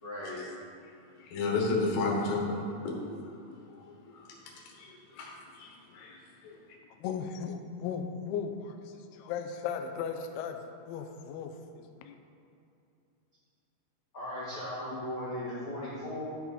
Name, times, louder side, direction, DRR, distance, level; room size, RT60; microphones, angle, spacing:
voice 1, 0.0-0.4 14.1-16.2, left 1 dB, 40° left, -12 dB, 2.0 m, -37 dB
voice 2, 1.2-3.0 3.8-4.3 4.7-6.6, left 3 dB, 70° left, -2 dB, 3.3 m, -33 dB
voice 3, 7.0-10.6 10.9-12.1, left 7 dB, 85° left, 6 dB, 2.3 m, -37 dB
12.0 x 6.0 x 4.2 m, 2.7 s
omnidirectional pair, 5.3 m